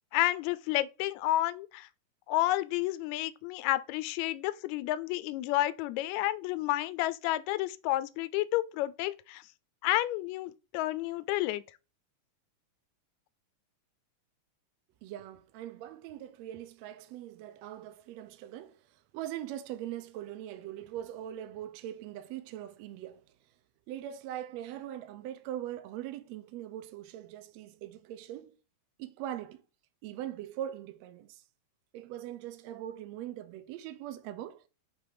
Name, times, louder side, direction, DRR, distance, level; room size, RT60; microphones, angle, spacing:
voice 1, 0.1-1.9 2.3-9.4 9.8-11.6, left 16 dB, 80° left, 1.7 m, -30 dB
voice 2, 15.0-23.3 23.9-28.6 29.0-29.6 30.0-31.4 31.9-34.6, right 12 dB, 80° right, 1.6 m, -41 dB
6.2 x 3.3 x 4.8 m
omnidirectional pair, 3.5 m